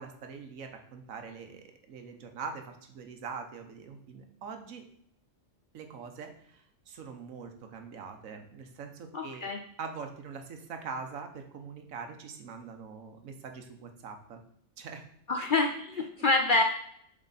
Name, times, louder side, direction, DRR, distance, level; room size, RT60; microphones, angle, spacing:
voice 1, 0.0-4.8 5.7-9.5 9.8-14.4 14.8-15.0 15.4-15.5, right 5 dB, 85° right, 5 dB, 1.3 m, -43 dB
voice 2, 9.1-9.6 15.3-16.6, left 2 dB, 60° left, 3 dB, 0.5 m, -26 dB
7.4 x 3.7 x 4.1 m, 0.67 s
omnidirectional pair, 1.4 m